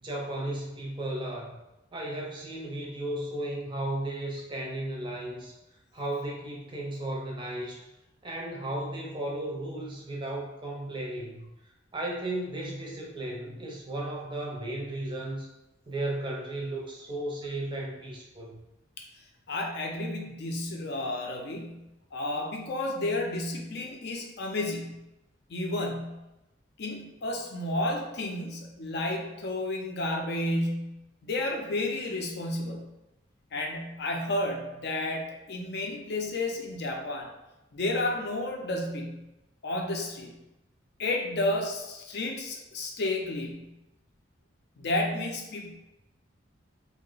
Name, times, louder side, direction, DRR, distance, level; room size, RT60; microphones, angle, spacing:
voice 1, 0.0-1.6 1.9-5.5 5.9-7.8 8.2-11.5 11.9-15.5 15.9-18.6, right 1 dB, 25° right, -2 dB, 0.5 m, -35 dB
voice 2, 19.5-21.8 22.1-25.0 25.5-26.2 26.8-32.9 33.5-37.3 37.7-39.2 39.6-40.3 41.0-43.7 44.8-45.7, left 2 dB, 55° left, 1 dB, 0.5 m, -31 dB
2.8 x 2.1 x 3.8 m, 0.95 s
head